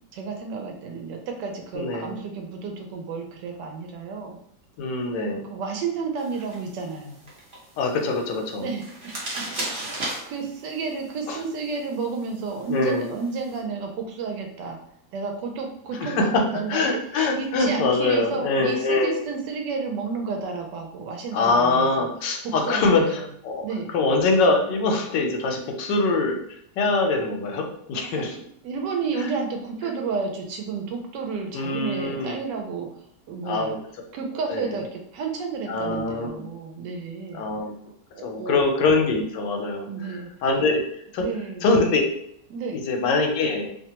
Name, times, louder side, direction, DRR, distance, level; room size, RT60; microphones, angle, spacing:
voice 1, 0.1-4.4 5.5-7.2 8.6-14.8 15.1-17.0 17.4-22.1 22.4-23.3 23.6-23.9 28.1-32.9 33.3-33.8 34.1-37.5 38.1-38.7 39.9-40.3 41.2-41.6 42.5-42.8, right 4 dB, 80° right, 3 dB, 1.2 m, -31 dB
voice 2, 1.7-2.1 4.8-5.4 7.8-8.7 11.3-11.4 12.7-13.1 16.0-16.4 16.7-19.2 21.3-23.0 23.4-23.7 23.9-26.4 26.8-28.3 29.2-29.3 31.5-32.4 33.4-33.8 34.5-34.7 35.7-36.4 37.3-37.7 38.2-39.9 40.4-40.8 41.1-41.3 41.6-42.0 42.7-43.7, left 3 dB, 80° left, 3 dB, 1.2 m, -23 dB
sound 1, 6.2-13.6, right 1 dB, 45° right, 0.9 m, -38 dB
2.9 x 2.1 x 2.8 m, 0.70 s
omnidirectional pair, 1.9 m